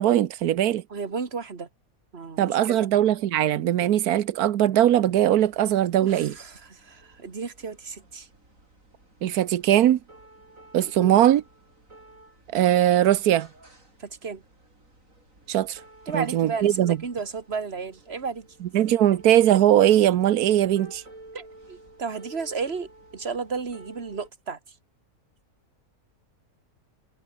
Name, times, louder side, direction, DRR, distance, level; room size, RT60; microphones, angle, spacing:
voice 1, 0.0-0.8 2.4-6.3 9.2-10.0 10.7-11.4 12.5-13.5 15.5-15.8 16.1-17.0 18.7-21.0, right 11 dB, 90° right, 1.3 m, -20 dB
voice 2, 0.9-1.7 2.1-2.8 6.0-8.3 10.9-11.2 14.0-14.4 16.1-18.5 21.3-24.6, right 5 dB, 45° right, 2.2 m, -33 dB
sound 1, 4.7-24.3, right 2 dB, 60° right, 7.0 m, -52 dB
omnidirectional pair, 1.6 m